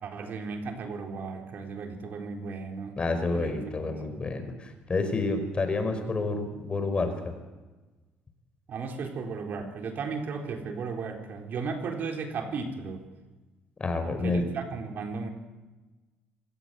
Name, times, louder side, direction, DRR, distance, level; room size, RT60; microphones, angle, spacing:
voice 1, 0.0-3.0 3.3-4.2 8.7-13.0 14.2-15.3, right 4 dB, 55° right, 3 dB, 4.0 m, -35 dB
voice 2, 3.0-7.3 13.8-14.5, left 3 dB, 30° left, 8 dB, 5.0 m, -29 dB
26.5 x 17.0 x 8.2 m, 1.2 s
cardioid pair, 100°, 4 cm